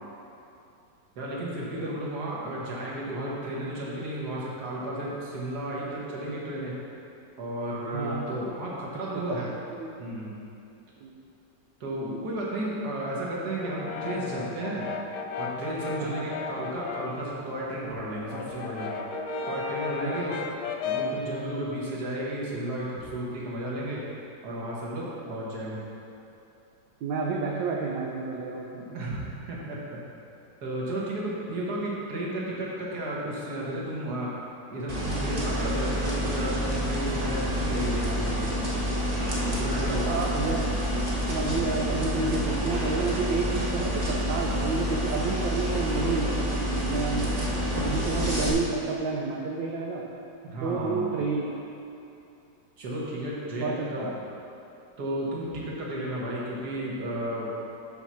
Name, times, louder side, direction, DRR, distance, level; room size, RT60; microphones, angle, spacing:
voice 1, 1.2-6.7 7.4-9.5 10.0-10.3 11.8-14.9 15.4-18.9 19.5-20.3 20.8-24.0 24.4-25.8 28.9-30.0 30.6-34.3 34.7-38.5 39.6-40.2 50.4-51.1 52.8-54.1 55.0-57.5, right 1 dB, 55° right, -5 dB, 1.9 m, -33 dB
voice 2, 7.9-8.6 9.3-9.4 9.8-9.9 11.0-11.2 16.0-16.2 19.9-20.2 25.0-25.4 27.0-28.6 40.0-40.8 41.3-47.4 47.8-50.1 50.6-51.5 53.6-54.1, right 4 dB, 75° right, -2 dB, 1.4 m, -30 dB
Brass instrument, 13.6-17.3 17.6-21.3, left 4 dB, 70° left, 0.9 m, -34 dB
sound 1, 34.9-48.5, equal, 25° right, 1.0 m, -28 dB
8.1 x 4.5 x 5.6 m, 2.7 s
omnidirectional pair, 2.1 m